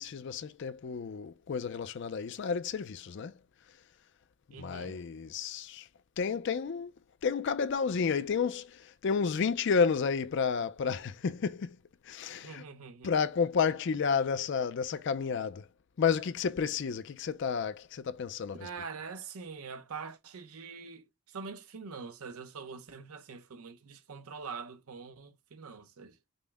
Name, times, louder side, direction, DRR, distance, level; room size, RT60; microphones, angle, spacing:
voice 1, 0.0-3.4 4.5-5.9 6.2-6.9 7.2-11.8 12.0-12.6 13.0-15.7 16.0-18.7, left 6 dB, 55° left, 0.4 m, -31 dB
voice 2, 4.5-4.9 12.3-13.1 18.6-26.2, right 5 dB, 85° right, 0.7 m, -44 dB
5.3 x 2.1 x 3.3 m
head